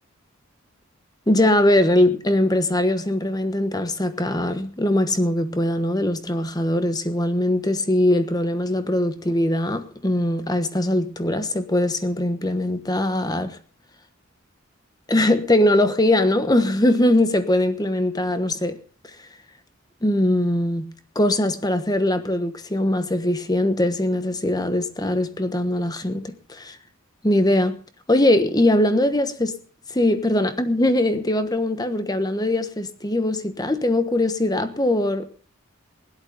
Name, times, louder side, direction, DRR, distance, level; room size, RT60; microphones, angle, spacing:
voice 1, 1.3-13.6 15.1-18.8 20.0-26.8 27.2-27.7 28.1-29.6 29.9-35.3, left 1 dB, 20° left, 1.2 m, -21 dB
17.0 x 11.5 x 5.2 m
head